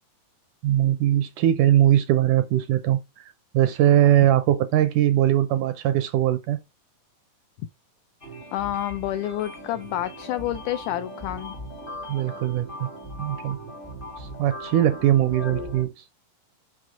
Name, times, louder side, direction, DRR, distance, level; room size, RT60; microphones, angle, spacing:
voice 1, 0.6-3.3 3.5-6.6 12.1-12.9 13.2-13.6 14.2-16.0, right 12 dB, 80° right, 1.8 m, -21 dB
sound 1, 8.2-15.8, equal, 65° left, 0.5 m, -38 dB
voice 2, 8.5-11.6, left 13 dB, 85° left, 1.7 m, -29 dB
6.3 x 5.3 x 3.6 m
omnidirectional pair, 4.0 m